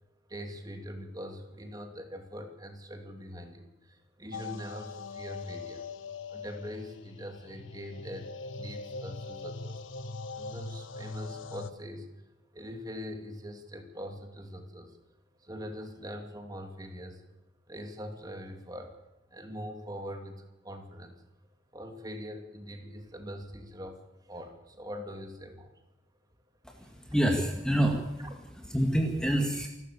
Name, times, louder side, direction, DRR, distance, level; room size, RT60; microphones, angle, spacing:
voice 1, 0.3-5.9 6.3-8.3 8.6-9.8 10.3-12.1 12.5-15.0 15.4-17.2 17.7-18.9 19.3-21.2 21.7-24.0 24.2-25.7, equal, 20° right, 5 dB, 2.8 m, -42 dB
sound 1, 4.3-11.7, left 3 dB, 90° left, 1.1 m, -41 dB
voice 2, 26.6-29.7, right 1 dB, 5° left, 2 dB, 2.0 m, -28 dB
27.5 x 13.0 x 8.4 m, 0.93 s
head